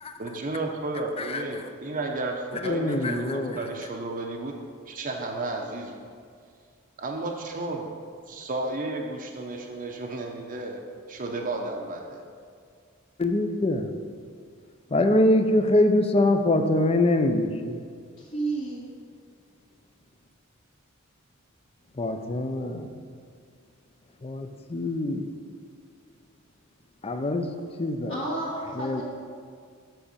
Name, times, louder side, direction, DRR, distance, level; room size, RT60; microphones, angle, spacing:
voice 1, 0.2-4.6 4.9-6.0 7.0-7.9 8.3-10.8 11.1-12.2, right 2 dB, 40° right, 1 dB, 0.8 m, -33 dB
voice 2, 1.2-1.5 2.6-3.6 13.2-13.9 14.9-17.9 21.9-22.9 24.2-25.3 27.0-27.5 27.8-28.2 28.7-29.0, left 1 dB, 25° left, 6 dB, 0.6 m, -24 dB
voice 3, 18.2-18.9 28.1-29.0, right 2 dB, 60° left, -9 dB, 1.9 m, -31 dB
7.8 x 5.9 x 6.8 m, 2.1 s
head